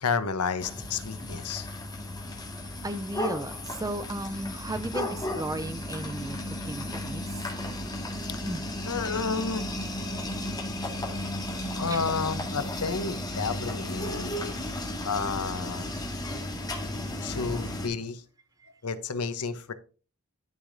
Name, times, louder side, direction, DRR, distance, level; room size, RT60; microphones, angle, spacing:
voice 1, 0.0-1.7 8.2-8.6 8.9-10.5 11.7-14.3 15.0-15.9 17.2-18.2 18.8-19.7, left 5 dB, 85° left, 0.9 m, -31 dB
sound 1, 0.6-17.9, left 1 dB, 20° left, 1.9 m, -34 dB
voice 2, 2.8-7.4 8.4-8.6 11.9-12.2, right 1 dB, 15° right, 0.5 m, -35 dB
12.5 x 5.0 x 2.6 m
head